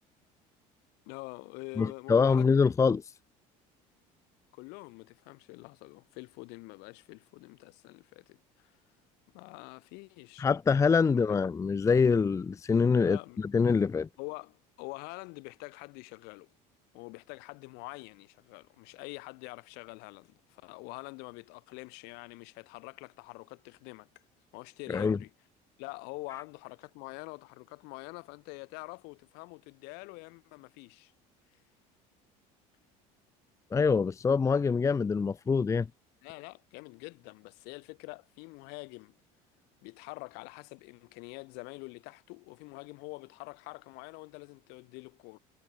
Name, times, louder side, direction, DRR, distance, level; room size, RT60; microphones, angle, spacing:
voice 1, 1.1-2.7 4.5-8.7 9.3-10.5 11.0-11.2 13.0-13.4 14.2-16.5 16.9-24.1 24.5-25.3 25.8-31.1 36.2-39.1 39.8-45.4, left 29 dB, 75° left, 4.6 m, -45 dB
voice 2, 1.8-3.0 10.4-14.1 24.9-25.2 33.7-35.9, left 5 dB, 20° left, 0.6 m, -25 dB
cardioid pair, 120°, 17 cm